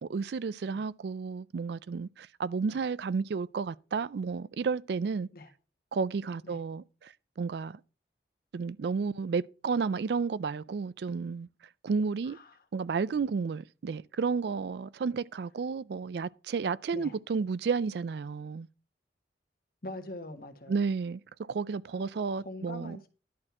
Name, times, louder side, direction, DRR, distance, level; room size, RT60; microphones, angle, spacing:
voice 1, 0.0-5.3 5.9-7.8 8.5-11.5 11.8-12.4 12.7-18.7 20.7-21.2 21.5-23.0, right 5 dB, 65° right, 0.3 m, -32 dB
voice 2, 12.2-12.6 16.9-17.1 19.8-20.8 22.0-23.1, left 2 dB, 50° left, 1.4 m, -44 dB
11.0 x 4.4 x 5.9 m
head